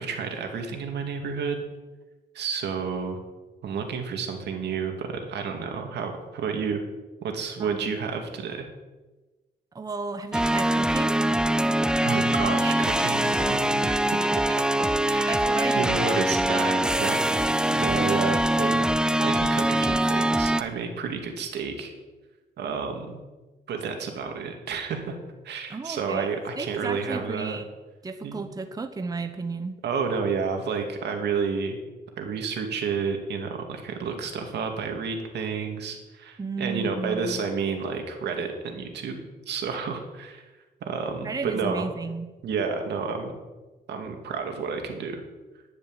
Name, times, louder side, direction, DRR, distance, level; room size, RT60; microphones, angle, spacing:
voice 1, 0.0-1.6 2.3-3.2 3.6-6.8 7.2-8.7 12.0-14.3 15.0-15.4 15.8-17.2 17.7-21.9 22.6-23.2 23.7-25.1 25.4-27.6 28.2-28.4 29.8-31.8 32.2-40.4 40.8-41.9 42.4-43.3 43.9-45.2, right 5 dB, 80° right, 4 dB, 2.5 m, -30 dB
voice 2, 7.6-8.0 9.7-11.2 14.5-14.6 15.3-16.1 25.7-26.3 26.6-27.7 28.0-29.8 36.4-37.5 41.2-42.3, right 4 dB, 20° right, 8 dB, 0.9 m, -33 dB
sound 1, 10.3-20.6, right 1 dB, 5° right, 0.5 m, -23 dB
10.5 x 9.8 x 9.2 m, 1.2 s
cardioid pair, 125°, 17 cm